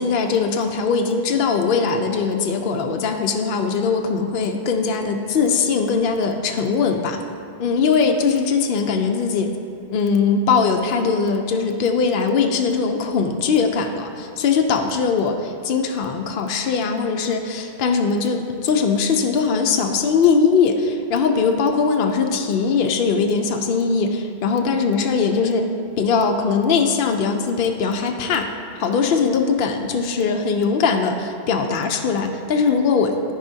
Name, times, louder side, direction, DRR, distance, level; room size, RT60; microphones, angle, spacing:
voice 1, 0.0-7.2 7.6-9.5 9.9-25.7 26.0-28.5 28.8-33.3, left 5 dB, 65° left, 4 dB, 0.7 m, -20 dB
13.5 x 4.9 x 2.7 m, 2.6 s
omnidirectional pair, 1.0 m